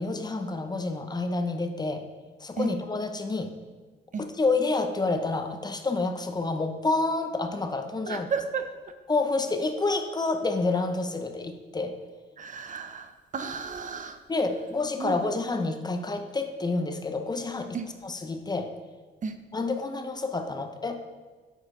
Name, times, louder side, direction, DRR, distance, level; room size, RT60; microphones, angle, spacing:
voice 1, 0.0-2.0 2.4-3.5 4.4-8.3 9.1-12.0 14.3-17.8 18.0-18.7 19.5-21.0, left 3 dB, 20° left, 6 dB, 0.7 m, -28 dB
voice 2, 8.1-8.6 12.4-14.2 15.0-15.2 17.7-17.9 19.2-19.4, right 5 dB, 40° right, 9 dB, 0.6 m, -33 dB
8.0 x 4.4 x 3.7 m, 1.4 s
cardioid pair, 90°, 20 cm